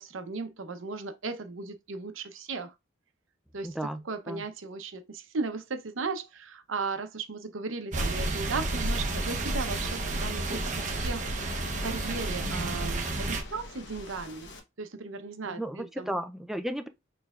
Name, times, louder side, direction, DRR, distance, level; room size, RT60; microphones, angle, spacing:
voice 1, 0.0-2.7 3.5-3.8 4.0-14.5 14.8-16.1, right 4 dB, 85° right, 0.8 m, -36 dB
voice 2, 3.6-4.4 15.4-16.9, right 1 dB, ahead, 0.3 m, -34 dB
sound 1, 7.9-13.4, right 2 dB, 40° right, 0.8 m, -31 dB
Waves surf, 8.7-14.6, left 1 dB, 60° left, 1.0 m, -44 dB
6.4 x 3.3 x 2.4 m
head